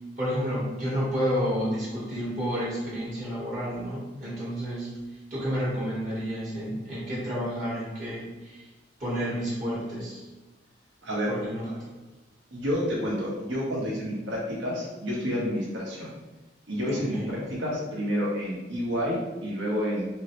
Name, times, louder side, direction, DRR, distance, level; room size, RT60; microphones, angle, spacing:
voice 1, 0.2-4.9 5.3-8.7 9.0-10.3 11.3-11.8 16.9-17.4, equal, 45° right, -8 dB, 1.2 m, -30 dB
voice 2, 11.0-11.3 12.5-16.1 16.7-20.1, equal, 70° right, -4 dB, 1.2 m, -29 dB
3.7 x 3.2 x 3.0 m, 1.2 s
head